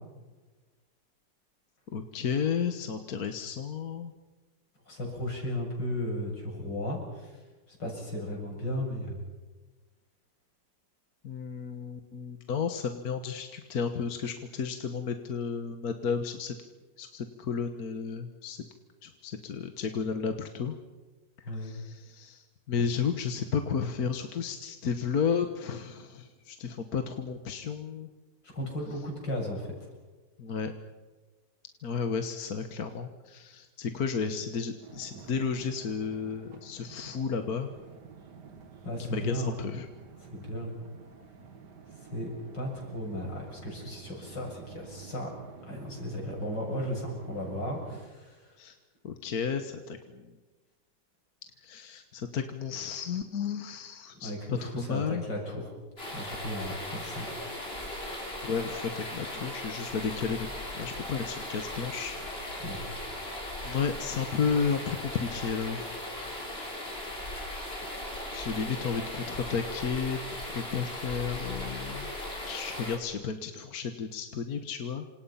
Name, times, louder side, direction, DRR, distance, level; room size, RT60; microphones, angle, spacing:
voice 1, 1.9-4.1 11.2-16.5 17.0-18.6 19.0-20.7 21.5-28.1 30.4-30.7 31.8-37.7 39.1-39.9 48.6-48.7 49.0-50.2 51.6-55.3 58.4-60.5 60.7-62.2 63.6-65.8 67.8-72.1 72.5-75.1, left 6 dB, 55° left, 7 dB, 1.7 m, -33 dB
voice 2, 4.9-7.4 7.7-9.2 21.4-21.7 28.5-29.7 38.8-39.5 40.2-40.7 42.0-45.3 45.7-48.5 54.2-55.7 56.1-57.4 62.6-62.8, left 1 dB, 75° left, 0 dB, 8.0 m, -35 dB
sound 1, 34.8-48.1, right 6 dB, 65° right, 2.4 m, -49 dB
sound 2, 56.0-73.0, left 1 dB, 30° left, 5.1 m, -38 dB
28.5 x 26.0 x 5.7 m, 1.3 s
omnidirectional pair, 2.0 m